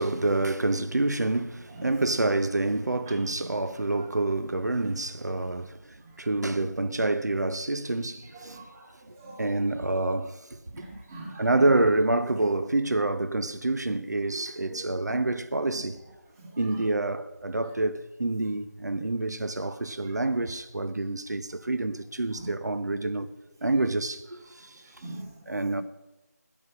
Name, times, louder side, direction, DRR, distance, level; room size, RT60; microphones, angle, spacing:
voice 1, 0.0-8.7 9.4-10.6 11.4-16.0 16.6-23.3 23.6-25.1 25.5-25.8, right 2 dB, 85° right, 0.8 m, -27 dB
voice 2, 8.4-8.9 9.2-9.5 10.7-11.6 14.7-14.8 15.1-15.2 16.4-16.8 22.4-22.5 25.0-25.8, right 2 dB, 10° right, 1.4 m, -43 dB
8.8 x 8.6 x 8.4 m
figure-of-eight pair, 170°, 9 cm